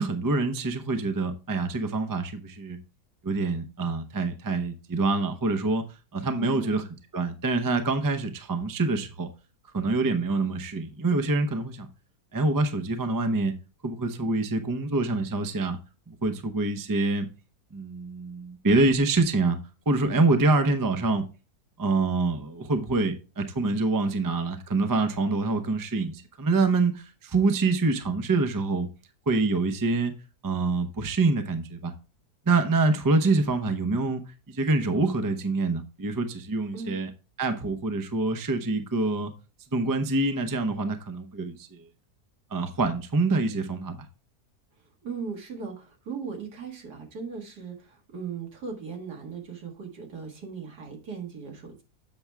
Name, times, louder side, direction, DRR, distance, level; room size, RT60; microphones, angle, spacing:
voice 1, 0.0-2.8 3.2-5.8 6.1-6.8 7.1-9.3 9.7-11.9 12.3-13.5 13.8-15.8 16.1-17.3 17.7-19.6 19.9-21.3 21.8-28.9 29.3-30.1 30.4-31.9 32.5-37.1 37.4-39.3 39.7-41.8 42.5-44.0, right 3 dB, 25° right, 0.4 m, -26 dB
voice 2, 6.4-6.9 36.7-36.9 45.0-51.8, right 6 dB, 80° right, 2.3 m, -38 dB
7.9 x 6.0 x 3.4 m
omnidirectional pair, 1.7 m